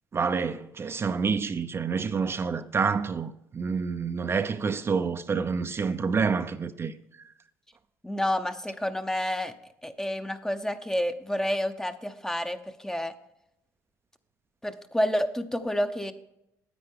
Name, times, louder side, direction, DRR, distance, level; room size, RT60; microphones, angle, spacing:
voice 1, 0.1-6.9, right 5 dB, 35° right, 0.6 m, -28 dB
voice 2, 8.0-9.5 9.8-13.1 14.6-16.1, equal, 5° left, 0.8 m, -29 dB
9.8 x 8.4 x 3.6 m
supercardioid pair, 70°, 7 cm